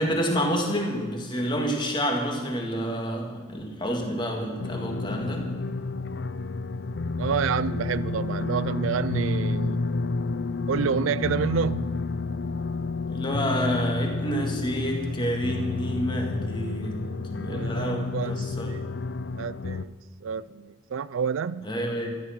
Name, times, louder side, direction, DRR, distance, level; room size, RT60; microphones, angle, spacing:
voice 1, 0.0-5.5 13.1-17.0 17.3-18.7 21.6-22.1, equal, 25° left, 2.1 m, -28 dB
sound 1, 4.6-19.9, left 3 dB, 60° left, 0.5 m, -30 dB
voice 2, 7.2-9.8 10.7-11.9 17.4-18.9 19.4-19.9 20.2-21.6, right 6 dB, 85° right, 0.4 m, -29 dB
13.5 x 11.0 x 6.0 m
head